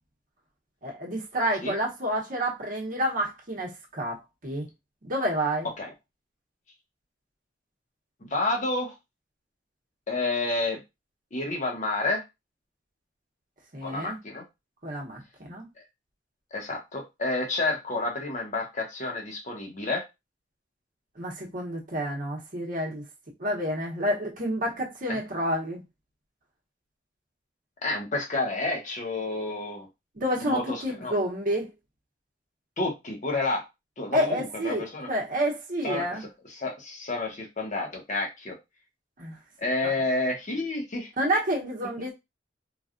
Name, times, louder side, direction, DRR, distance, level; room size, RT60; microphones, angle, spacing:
voice 1, 0.8-4.2 4.4-4.7 5.0-5.7 13.7-14.2 14.8-15.7 21.2-23.0 23.4-25.8 30.2-31.7 34.1-36.2 39.2-39.4 39.8-39.9 41.2-42.1, equal, 45° right, 0.9 m, -29 dB
voice 2, 8.3-8.9 10.1-10.8 11.3-12.2 13.8-14.4 16.5-20.0 25.1-25.2 27.8-29.9 30.4-31.2 32.8-33.6 34.0-35.1 35.8-36.0 36.6-38.6 39.6-41.1, left 2 dB, 40° left, 1.0 m, -30 dB
3.2 x 2.3 x 2.5 m
head